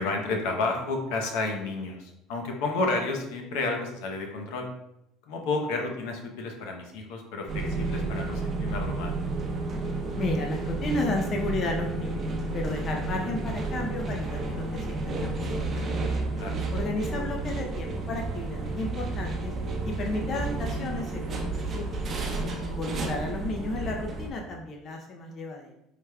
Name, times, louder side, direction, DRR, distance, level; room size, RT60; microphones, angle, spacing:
voice 1, 0.0-4.7 5.3-9.1 16.3-16.6 22.4-22.5, left 3 dB, 80° left, 2 dB, 0.8 m, -31 dB
sound 1, 7.5-24.3, right 3 dB, 35° right, 0.7 m, -31 dB
voice 2, 10.2-15.9 16.7-19.5 19.8-21.5 21.7-21.9 22.7-25.7, left 2 dB, 40° left, 2 dB, 0.5 m, -33 dB
4.8 x 3.4 x 2.2 m, 0.84 s
supercardioid pair, 115°, 0 cm